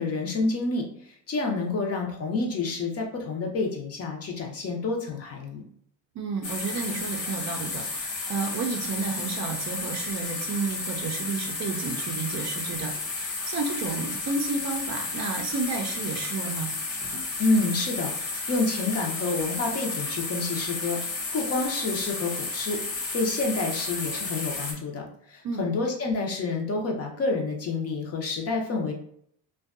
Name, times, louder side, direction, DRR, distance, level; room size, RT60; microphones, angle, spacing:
voice 1, 0.0-5.6 17.4-22.8 23.1-28.9, left 3 dB, 35° left, 1 dB, 0.6 m, -28 dB
voice 2, 6.1-16.7 25.4-25.6, right 4 dB, 40° right, 3 dB, 0.5 m, -31 dB
sound 1, 6.4-24.7, left 3 dB, 80° left, 0.9 m, -32 dB
2.5 x 2.3 x 2.4 m, 0.66 s
supercardioid pair, 100°, 41 cm